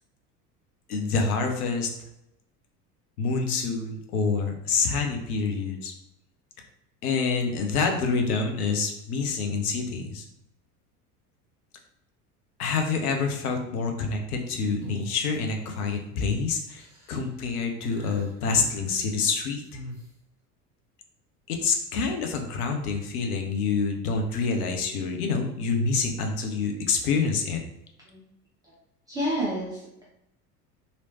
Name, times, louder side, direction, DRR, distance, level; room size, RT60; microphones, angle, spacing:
voice 1, 0.9-1.9 3.2-5.9 7.0-10.2 12.6-19.6 21.5-27.6, left 4 dB, 65° left, 3 dB, 0.7 m, -27 dB
sound 1, 14.8-15.7 16.1-16.3 16.7-17.2 17.8-18.8 19.7-20.1, left 1 dB, 5° left, 1.2 m, -41 dB
voice 2, 29.1-30.1, equal, 10° right, -7 dB, 0.3 m, -29 dB
3.0 x 2.8 x 2.7 m, 0.86 s
figure-of-eight pair, 75°, 49 cm